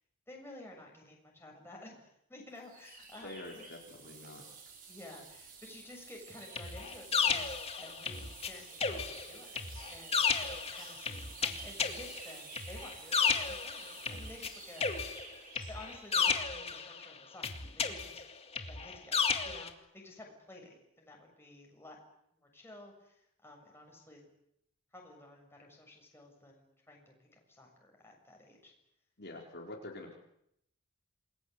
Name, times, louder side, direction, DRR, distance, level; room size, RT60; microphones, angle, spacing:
voice 1, 0.3-3.6 4.9-11.1 11.4-15.0 15.5-18.2 18.7-22.0 22.3-24.3 24.9-28.7, left 1 dB, 10° left, 0 dB, 7.2 m, -53 dB
sound 1, 2.5-16.4, right 5 dB, 40° right, 5.8 m, -51 dB
voice 2, 3.2-4.4 29.2-30.2, left 2 dB, 50° left, -1 dB, 4.5 m, -46 dB
sound 2, 6.6-8.5 8.8-14.5 14.8-17.1 17.4-19.7, left 5 dB, 30° left, 2.1 m, -33 dB
28.0 x 21.5 x 8.3 m, 0.77 s
head